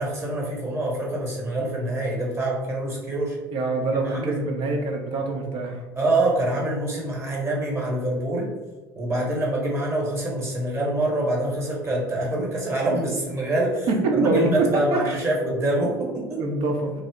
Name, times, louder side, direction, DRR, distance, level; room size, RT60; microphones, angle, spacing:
voice 1, 0.0-3.4 4.0-4.4 5.9-8.5 9.0-13.9 14.1-16.4, right 1 dB, 20° right, -2 dB, 1.1 m, -25 dB
voice 2, 3.5-5.8 13.9-15.2 16.4-16.9, right 3 dB, 50° right, 1 dB, 0.7 m, -24 dB
2.8 x 2.0 x 3.5 m, 1.2 s
figure-of-eight pair, 65°, 11 cm